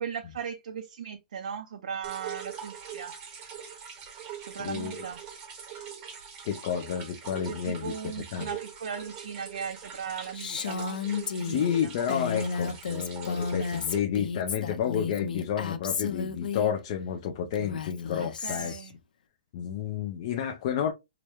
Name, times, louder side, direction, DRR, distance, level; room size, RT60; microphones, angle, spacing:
voice 1, 0.0-3.1 4.4-5.2 7.4-11.0 11.4-11.9 18.2-19.0, right 7 dB, 60° right, 0.5 m, -37 dB
sound 1, 2.0-14.0, right 8 dB, 20° right, 0.7 m, -43 dB
voice 2, 4.6-5.0 6.4-7.9 8.3-8.5 11.4-18.7 19.5-20.9, left 8 dB, 30° left, 0.3 m, -30 dB
Female speech woman speaking, 10.3-16.7 17.5-18.9, left 5 dB, 75° left, 0.7 m, -33 dB
4.8 x 2.1 x 2.9 m
hypercardioid pair, 170°, 5 cm